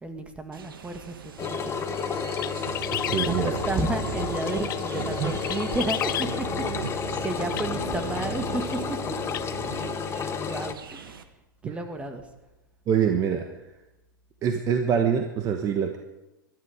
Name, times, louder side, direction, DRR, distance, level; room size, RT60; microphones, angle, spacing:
voice 1, 0.0-1.2 1.4-2.2 3.2-6.5 6.9-8.8 10.0-11.1 11.6-12.2, right 2 dB, 10° right, 7 dB, 1.8 m, -32 dB
sound 1, 0.5-11.2, right 8 dB, 85° right, 1.4 m, -38 dB
Engine, 1.4-10.7, left 6 dB, 25° left, 0.9 m, -31 dB
sound 2, 2.4-3.3 4.5-4.8 5.4-6.3 7.5-7.7 8.7-8.8 9.3-9.4, left 12 dB, 75° left, 0.6 m, -31 dB
voice 2, 2.9-3.6 5.2-5.3 11.6-11.8 12.9-13.5 14.4-16.0, right 7 dB, 30° right, 5 dB, 1.3 m, -25 dB
19.5 x 13.0 x 5.1 m, 1.0 s
hypercardioid pair, 120°, 11 cm